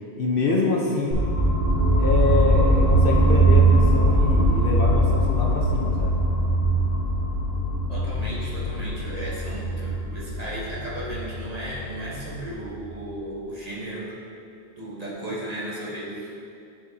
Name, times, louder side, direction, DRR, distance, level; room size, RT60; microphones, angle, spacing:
voice 1, 0.2-1.3 2.0-6.2, left 3 dB, 55° left, -2 dB, 1.0 m, -26 dB
sound 1, 1.1-13.0, right 1 dB, 85° right, 1.4 m, -21 dB
voice 2, 7.9-14.2 14.8-16.3, right 1 dB, 35° right, -6 dB, 1.3 m, -35 dB
11.5 x 4.3 x 2.8 m, 2.5 s
omnidirectional pair, 1.2 m